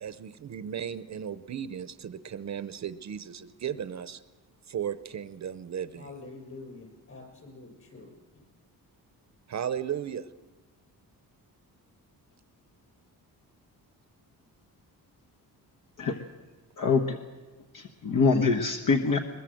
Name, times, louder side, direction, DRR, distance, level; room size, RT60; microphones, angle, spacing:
voice 1, 0.0-4.2 4.7-6.1 9.5-10.3, right 8 dB, 50° right, 13 dB, 0.8 m, -35 dB
voice 2, 6.0-8.1, left 3 dB, 40° left, 3 dB, 6.7 m, -46 dB
voice 3, 16.8-17.2 17.7-19.2, left 4 dB, 60° left, 4 dB, 1.4 m, -24 dB
22.0 x 22.0 x 7.8 m, 1.3 s
wide cardioid pair, 165°, 37 cm